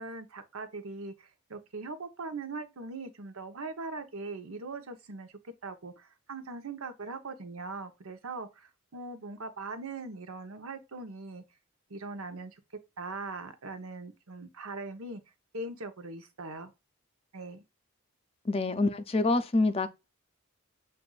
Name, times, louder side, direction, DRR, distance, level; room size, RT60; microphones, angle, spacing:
voice 1, 0.0-11.4 11.9-12.6 13.0-15.2 15.5-16.7 17.3-17.6, right 3 dB, 85° right, 0.9 m, -41 dB
voice 2, 18.5-19.9, left 2 dB, 25° left, 0.4 m, -26 dB
7.6 x 2.6 x 2.3 m
head